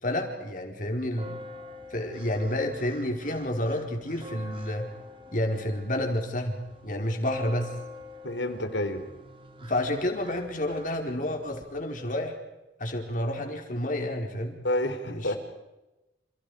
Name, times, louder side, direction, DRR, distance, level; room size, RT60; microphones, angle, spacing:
voice 1, 0.0-1.4 1.9-4.9 5.3-7.7 9.6-12.3 12.8-14.6 15.0-15.4, left 1 dB, 45° left, 3 dB, 4.6 m, -30 dB
sound 1, 1.1-11.6, left 1 dB, 30° right, 2.7 m, -46 dB
voice 2, 8.2-9.0 14.6-15.4, left 1 dB, 80° left, 8 dB, 3.5 m, -29 dB
30.0 x 29.5 x 5.0 m, 1.0 s
head